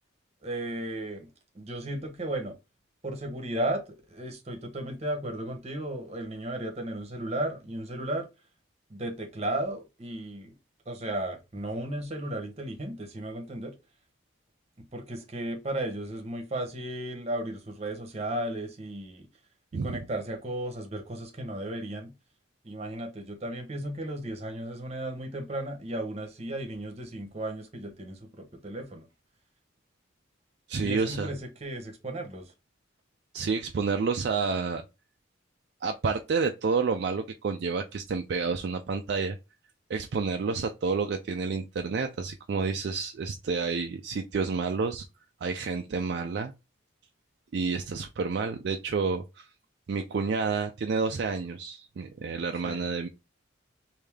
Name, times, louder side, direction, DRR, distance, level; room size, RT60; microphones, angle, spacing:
voice 1, 0.4-1.3 1.5-2.6 3.0-3.8 4.1-8.3 8.9-10.5 10.8-13.7 14.9-19.3 19.7-22.1 22.6-29.1 30.8-32.5 52.6-52.9, right 1 dB, 35° right, 0.9 m, -35 dB
voice 2, 30.7-31.3 33.3-34.8 35.8-39.4 39.9-45.0 45.4-46.5 47.5-49.5 49.9-53.1, right 4 dB, 55° right, 0.3 m, -29 dB
3.3 x 2.7 x 3.4 m
head